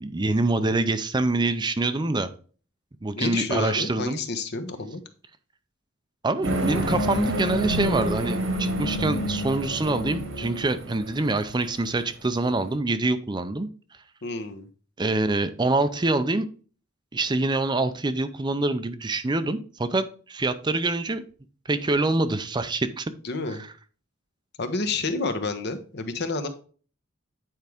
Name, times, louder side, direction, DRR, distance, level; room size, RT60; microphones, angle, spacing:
voice 1, 0.0-2.3 3.0-4.2 6.2-13.7 15.0-16.5 17.1-21.3 21.7-23.1 23.5-23.6, right 2 dB, 20° right, 11 dB, 0.5 m, -25 dB
voice 2, 3.1-5.0 14.2-14.7 23.2-23.6 24.6-26.5, left 3 dB, 55° left, 8 dB, 1.0 m, -29 dB
sound 1, 6.4-11.6, right 1 dB, 80° right, 1.7 m, -28 dB
9.1 x 4.7 x 3.5 m, 0.39 s
head